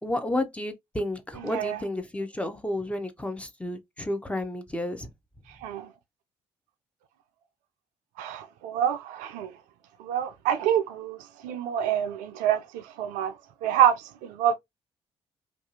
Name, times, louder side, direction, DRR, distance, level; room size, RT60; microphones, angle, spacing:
voice 1, 0.0-5.1, left 1 dB, 10° left, 0.6 m, -31 dB
voice 2, 1.4-1.8 5.6-5.9 8.2-9.5 10.0-11.2 11.4-13.4 13.6-14.5, right 10 dB, 65° right, 0.4 m, -26 dB
2.6 x 2.3 x 2.6 m
figure-of-eight pair, 45°, 14 cm